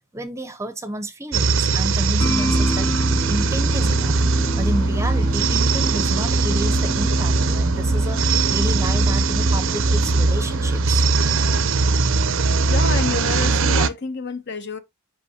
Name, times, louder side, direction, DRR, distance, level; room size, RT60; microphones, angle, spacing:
voice 1, 0.1-2.9 3.3-11.1, right 1 dB, 15° right, 0.7 m, -30 dB
sound 1, 1.3-13.9, right 3 dB, 65° right, 0.6 m, -20 dB
sound 2, 2.2-11.7, equal, 15° left, 0.4 m, -30 dB
voice 2, 12.7-14.8, left 4 dB, 50° left, 0.9 m, -28 dB
8.3 x 5.4 x 2.7 m
head